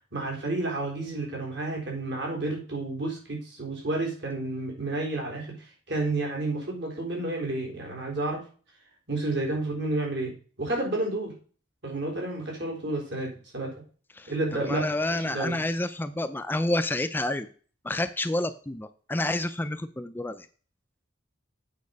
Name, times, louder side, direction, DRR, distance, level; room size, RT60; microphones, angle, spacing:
voice 1, 0.1-5.5 5.9-8.4 9.1-10.3 10.6-11.3 11.8-13.7 14.3-15.0 15.2-15.6, right 2 dB, 65° right, 0 dB, 4.0 m, -30 dB
voice 2, 14.6-17.5 17.8-20.5, left 1 dB, 10° left, 10 dB, 0.4 m, -29 dB
8.5 x 5.8 x 5.3 m, 0.40 s
head